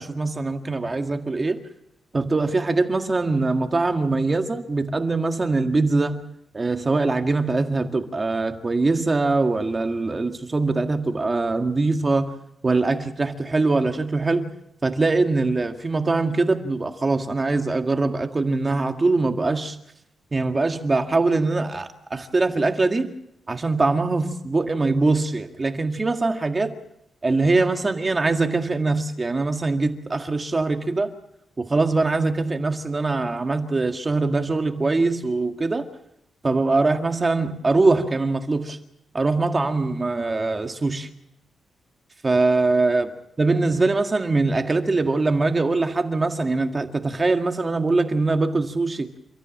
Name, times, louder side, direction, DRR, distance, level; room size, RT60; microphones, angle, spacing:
voice 1, 0.0-1.6 2.1-6.2 6.5-12.4 12.6-14.5 14.8-19.8 20.3-23.1 23.5-26.7 27.2-31.1 31.6-35.9 36.4-38.8 39.1-41.1 42.2-43.1 43.4-49.1, right 3 dB, 25° right, 6 dB, 1.9 m, -22 dB
30.0 x 14.0 x 7.6 m, 0.81 s
wide cardioid pair, 145°, 0 cm